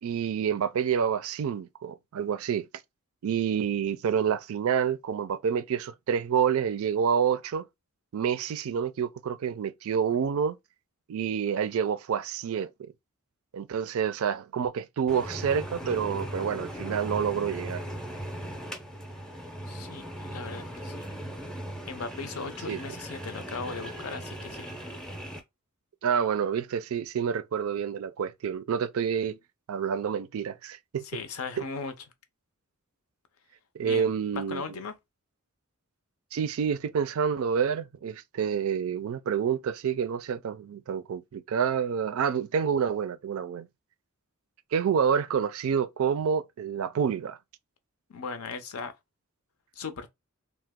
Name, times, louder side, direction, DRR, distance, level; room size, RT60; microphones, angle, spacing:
voice 1, 0.0-2.7 3.2-7.6 8.1-10.6 11.1-12.7 13.5-17.8 22.7-22.8 26.0-29.4 29.7-31.0 33.7-34.6 36.3-43.7 44.7-47.4, right 7 dB, 70° right, 0.4 m, -28 dB
sound 1, 15.1-25.4, right 1 dB, 5° left, 0.5 m, -38 dB
voice 2, 19.7-21.0 21.9-24.7 31.0-31.9 33.8-34.9 48.1-48.9 49.8-50.1, left 4 dB, 75° left, 0.6 m, -38 dB
2.9 x 2.0 x 3.5 m
head